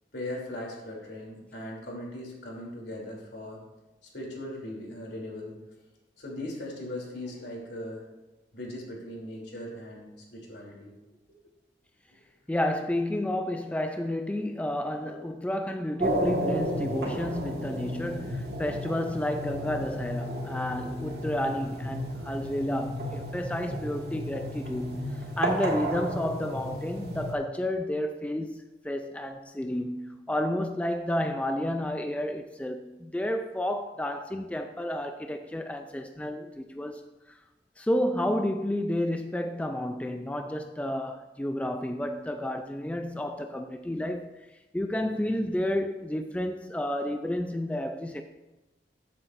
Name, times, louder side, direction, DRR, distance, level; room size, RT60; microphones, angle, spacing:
voice 1, 0.1-3.6 4.1-5.6 6.2-8.0 8.5-10.9 15.0-15.1, left 1 dB, 75° left, 3.0 m, -39 dB
voice 2, 12.5-37.0 37.3-37.4 37.8-44.5 44.7-48.2, left 1 dB, 10° left, 0.3 m, -31 dB
sound 1, 16.0-27.3, equal, 60° right, 1.7 m, -33 dB
14.0 x 7.7 x 2.5 m
head